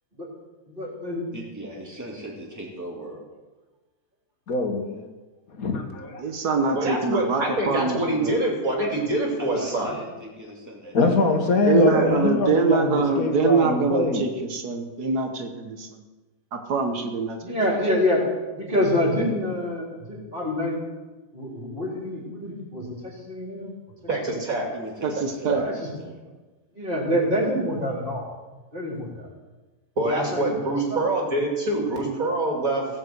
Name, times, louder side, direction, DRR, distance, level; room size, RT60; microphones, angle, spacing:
voice 1, 0.7-1.2 17.4-18.3 18.5-20.8 21.3-22.8 23.3-23.7 25.6-25.9 26.8-28.3 28.7-29.3 30.0-30.6 30.9-31.0, left 1 dB, 30° right, -3 dB, 4.0 m, -26 dB
voice 2, 1.3-3.2 9.4-11.6 12.0-12.2 13.1-13.4 24.7-25.6 26.0-26.2, right 1 dB, 10° right, -3 dB, 2.9 m, -39 dB
voice 3, 4.5-5.1 5.5-6.2 8.9-9.0 10.9-14.3, left 3 dB, 65° left, 3 dB, 1.8 m, -23 dB
voice 4, 6.2-8.4 11.7-15.9 16.5-17.5 25.0-25.6, right 5 dB, 85° right, 4 dB, 1.7 m, -24 dB
voice 5, 6.7-9.9 11.8-12.2 24.1-24.7 25.5-25.6 30.0-32.9, right 2 dB, 60° right, 0 dB, 3.1 m, -25 dB
17.0 x 5.8 x 8.0 m, 1.2 s
omnidirectional pair, 1.7 m